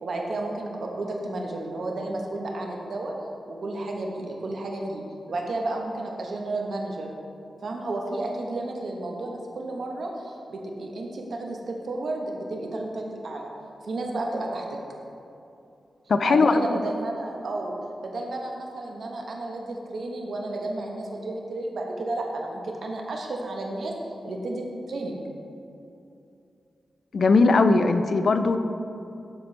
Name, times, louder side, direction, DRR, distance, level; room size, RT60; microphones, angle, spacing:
voice 1, 0.0-3.1 3.5-5.0 5.3-7.1 7.6-13.5 13.8-14.8 16.2-17.7 18.0-23.9 24.2-25.2, right 2 dB, 70° right, 0 dB, 0.9 m, -32 dB
voice 2, 16.1-16.8 27.1-28.6, left 3 dB, 60° left, 9 dB, 0.4 m, -19 dB
11.5 x 4.3 x 3.2 m, 2.7 s
wide cardioid pair, 90°, 0 cm